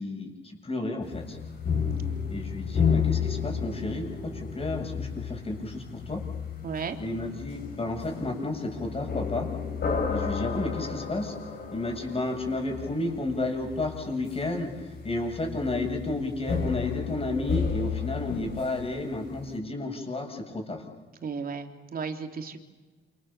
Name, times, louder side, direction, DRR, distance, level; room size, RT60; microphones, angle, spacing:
voice 1, 0.0-1.4 2.3-6.2 7.0-9.5 10.1-11.3 11.7-20.8, left 2 dB, 30° left, 2 dB, 7.8 m, -32 dB
sound 1, 1.0-19.5, left 6 dB, 55° left, 7.2 m, -32 dB
voice 2, 1.9-2.3 6.6-7.0 21.2-22.6, right 5 dB, 45° right, 6 dB, 3.4 m, -35 dB
28.5 x 27.5 x 7.2 m, 1.3 s
cardioid pair, 90°, 20 cm